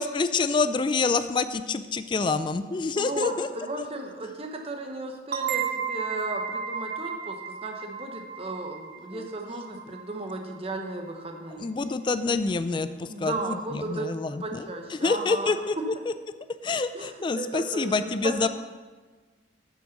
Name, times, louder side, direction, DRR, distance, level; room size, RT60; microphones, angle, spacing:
voice 1, 0.0-3.5 9.1-9.3 11.6-15.9 16.6-18.5, left 4 dB, 25° left, 11 dB, 0.3 m, -27 dB
voice 2, 3.0-11.7 13.0-14.1 14.4-15.5 16.9-17.1 17.3-18.5, right 2 dB, 30° right, 3 dB, 1.0 m, -35 dB
sound 1, 5.3-10.7, right 7 dB, 55° right, 0.6 m, -34 dB
7.8 x 6.2 x 5.9 m, 1.4 s
head